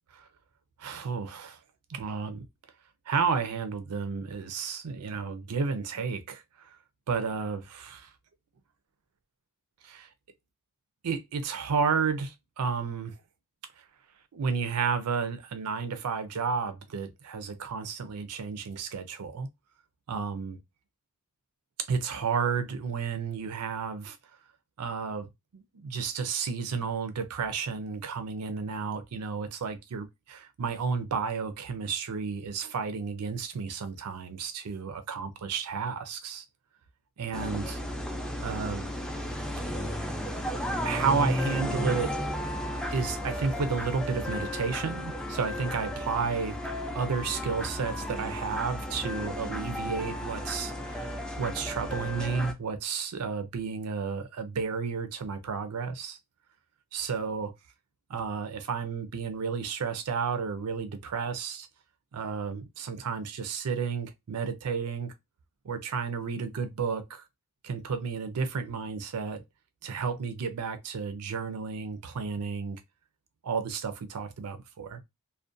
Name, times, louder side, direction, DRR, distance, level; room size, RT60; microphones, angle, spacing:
voice 1, 0.8-1.6 1.9-2.4 3.1-6.8 7.1-8.1 9.8-10.1 11.0-13.2 13.8-13.9 14.3-19.5 20.1-20.6 21.9-24.2 24.8-36.4 37.2-37.8 38.4-38.9 40.8-42.2 42.9-56.2 56.9-57.5 58.1-61.7 62.1-65.1 65.6-67.2 67.6-69.4 69.8-72.8 73.4-75.0, right 5 dB, 90° right, 0.5 m, -32 dB
sound 1, 37.3-52.5, left 1 dB, 5° left, 0.3 m, -33 dB
2.4 x 2.1 x 2.5 m
head